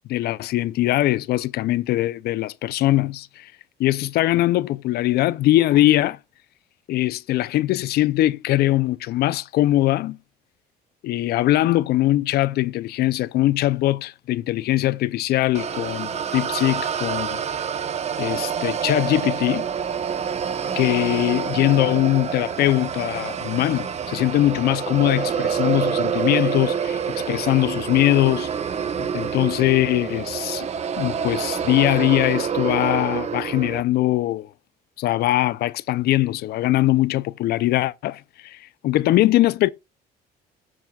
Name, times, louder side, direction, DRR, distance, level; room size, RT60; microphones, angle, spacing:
voice 1, 0.1-3.5 3.8-6.2 6.9-10.2 11.0-17.4 18.2-19.7 20.8-28.5 29.0-30.7 31.0-34.5 35.0-39.7, left 15 dB, 70° left, 0.5 m, -21 dB
sound 1, 15.5-33.8, right 7 dB, 40° right, 1.0 m, -27 dB
17.0 x 7.4 x 2.3 m
cardioid pair, 110°, 17 cm